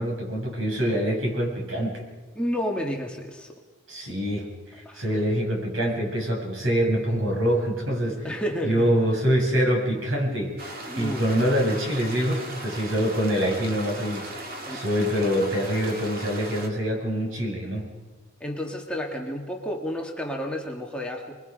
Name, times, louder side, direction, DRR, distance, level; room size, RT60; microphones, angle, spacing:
voice 1, 0.0-2.0 3.9-8.3 8.6-17.9, equal, 75° right, 0 dB, 7.2 m, -25 dB
voice 2, 2.3-3.5 4.9-5.0 8.2-8.9 10.9-11.2 14.6-14.8 18.4-21.4, equal, 5° left, 0 dB, 2.0 m, -31 dB
sound 1, 10.6-16.7, right 1 dB, 45° right, 2.7 m, -37 dB
29.5 x 22.0 x 5.4 m, 1.4 s
head